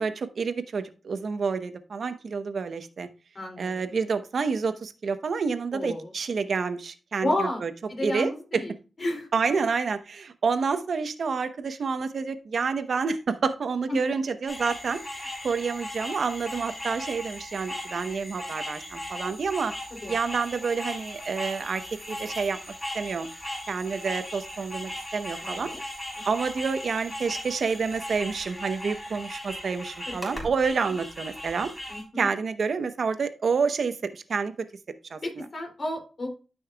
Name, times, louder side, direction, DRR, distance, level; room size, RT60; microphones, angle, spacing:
voice 1, 0.0-3.1 3.6-7.7 8.0-8.6 9.3-19.7 20.1-21.8 22.1-22.6 22.9-23.3 23.7-25.7 26.2-31.7 32.2-34.7 35.1-35.4, right 5 dB, 65° right, 10 dB, 0.8 m, -28 dB
voice 2, 3.3-3.9 5.7-6.1 7.2-8.7 9.0-9.3 13.9-14.0 19.9-20.1 25.4-25.8 30.1-30.3 31.9-32.3 35.2-36.3, left 1 dB, 40° left, 3 dB, 2.7 m, -32 dB
sound 1, 14.5-32.0, left 1 dB, 20° left, 3.5 m, -38 dB
13.0 x 5.5 x 2.3 m, 0.34 s
wide cardioid pair, 95°, 0 cm